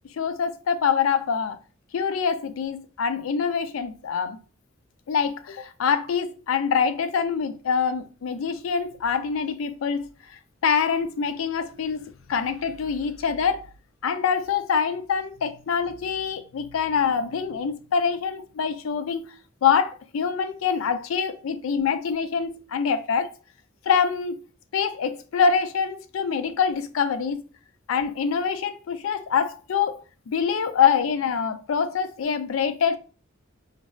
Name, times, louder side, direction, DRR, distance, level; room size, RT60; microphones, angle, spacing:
voice 1, 0.2-1.6 1.9-4.4 5.1-10.1 10.6-13.6 14.0-19.3 19.6-23.3 23.9-24.4 24.7-27.4 27.9-33.0, left 6 dB, 80° left, 0.4 m, -25 dB
3.9 x 2.1 x 2.2 m
head